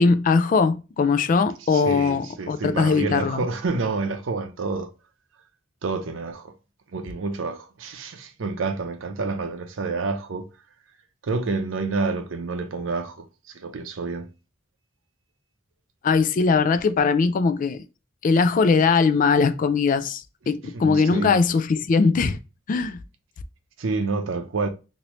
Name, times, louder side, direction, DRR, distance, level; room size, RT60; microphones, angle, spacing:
voice 1, 0.0-3.4 16.0-17.8 18.2-22.4 22.7-23.0, left 4 dB, 45° left, 0.3 m, -20 dB
voice 2, 1.7-4.9 5.8-6.5 6.9-10.5 11.2-14.3 20.7-21.4 23.8-24.7, right 3 dB, 80° right, 0.6 m, -28 dB
3.1 x 2.6 x 3.0 m
head